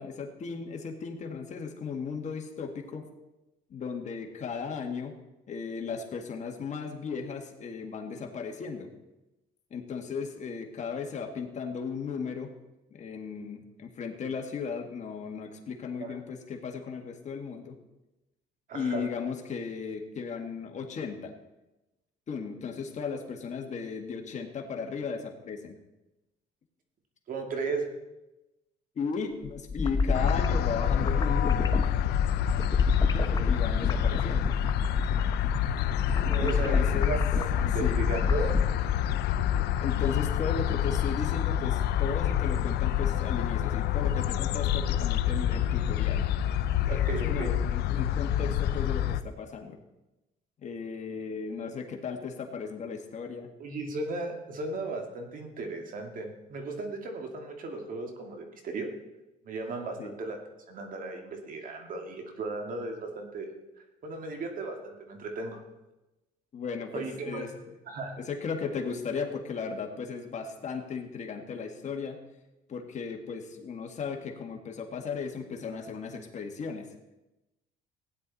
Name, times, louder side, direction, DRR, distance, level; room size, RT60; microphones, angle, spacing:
voice 1, 0.0-3.0 3.7-5.1 5.5-8.9 9.7-12.5 12.9-17.8 18.7-21.3 22.3-25.7 29.0-31.8 33.1-34.6 36.4-37.2 37.8-38.0 39.8-46.2 47.3-49.8 50.6-53.5 60.0-60.1 66.5-67.5 68.2-72.2 72.7-76.9, left 5 dB, 45° left, 3 dB, 1.8 m, -36 dB
voice 2, 18.7-19.1 27.3-27.9 36.3-38.6 46.9-47.5 53.6-58.9 59.4-60.4 60.7-63.5 64.0-65.6 66.9-67.5 67.9-68.2, right 3 dB, 55° right, 3 dB, 2.2 m, -36 dB
sound 1, 29.4-38.7, left 4 dB, 25° left, 0.9 m, -28 dB
sound 2, 30.1-49.2, left 11 dB, 75° left, 0.6 m, -28 dB
16.0 x 10.0 x 4.1 m, 0.99 s
cardioid pair, 110°, 17 cm